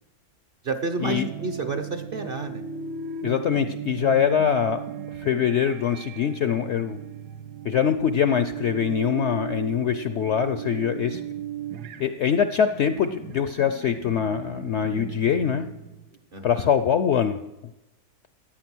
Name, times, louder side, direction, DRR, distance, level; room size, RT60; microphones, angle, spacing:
voice 1, 0.6-2.6 16.3-16.7, right 3 dB, 45° right, 7 dB, 0.8 m, -30 dB
sound 1, 1.0-16.2, right 7 dB, 85° right, 1.4 m, -37 dB
voice 2, 3.2-4.8 5.2-7.0 7.6-11.2 12.0-15.7 16.4-17.4, left 8 dB, 65° left, 10 dB, 0.7 m, -23 dB
14.5 x 8.9 x 6.1 m, 0.96 s
omnidirectional pair, 1.7 m